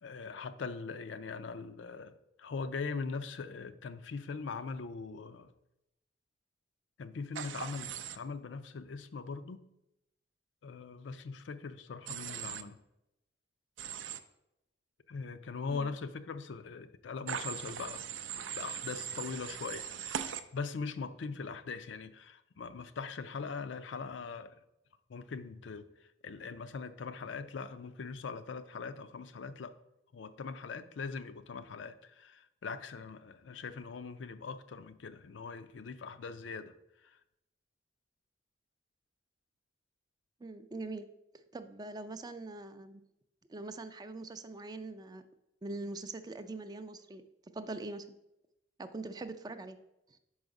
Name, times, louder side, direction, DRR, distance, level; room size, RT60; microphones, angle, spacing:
voice 1, 0.0-5.5 7.0-9.6 10.6-12.8 15.1-18.0 18.6-24.6 25.1-29.8 30.1-36.7 37.0-37.2, left 4 dB, 70° left, 11 dB, 0.4 m, -41 dB
Human voice / Train, 7.3-8.2 12.1-12.6 13.8-14.2 17.3-20.4, right 8 dB, 85° right, 0.4 m, -40 dB
voice 2, 40.4-41.1 41.5-43.0 43.5-45.2 45.6-47.2 47.5-48.1 48.8-49.8, right 2 dB, 20° right, 10 dB, 0.4 m, -42 dB
5.6 x 4.8 x 5.2 m, 0.87 s
head